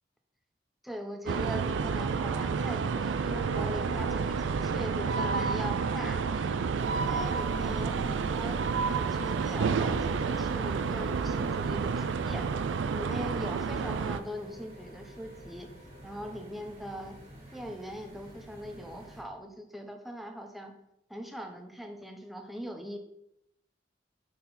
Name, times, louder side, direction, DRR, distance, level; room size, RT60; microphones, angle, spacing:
voice 1, 0.8-12.4 12.9-15.7 16.0-17.2 17.5-20.7 21.1-23.0, equal, ahead, 4 dB, 0.6 m, -41 dB
sound 1, 1.3-14.2, right 5 dB, 85° right, 0.4 m, -30 dB
sound 2, 4.8-16.3, right 1 dB, 60° left, 2.3 m, -52 dB
sound 3, 6.7-19.2, equal, 35° right, 2.1 m, -50 dB
5.7 x 4.3 x 4.1 m, 0.80 s
head